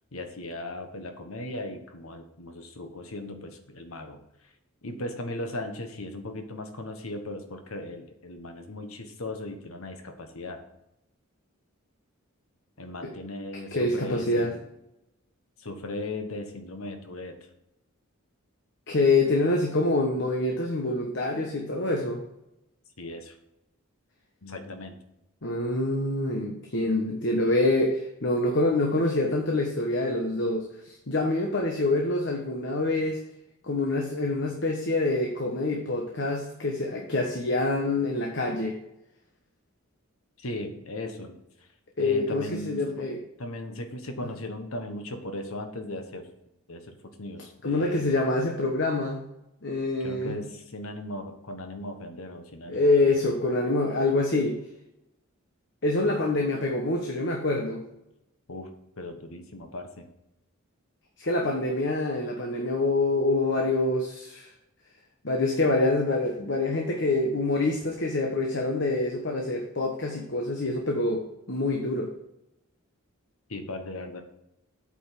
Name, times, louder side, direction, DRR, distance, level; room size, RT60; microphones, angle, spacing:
voice 1, 0.1-4.2 4.8-10.6 12.8-14.6 15.6-17.4 23.0-23.3 24.4-25.0 40.4-41.4 42.0-43.1 43.4-46.3 46.7-48.1 50.0-52.9 58.5-58.7 59.0-60.1 73.5-74.2, left 1 dB, 80° left, 6 dB, 1.3 m, -37 dB
voice 2, 13.7-14.5 18.9-22.2 25.4-33.2 33.6-38.7 42.0-43.2 44.2-44.3 47.6-49.2 49.6-50.4 52.7-54.6 55.8-57.8 61.2-64.5 65.2-72.1, left 2 dB, 55° left, 1 dB, 1.2 m, -26 dB
8.5 x 5.3 x 6.1 m, 0.84 s
head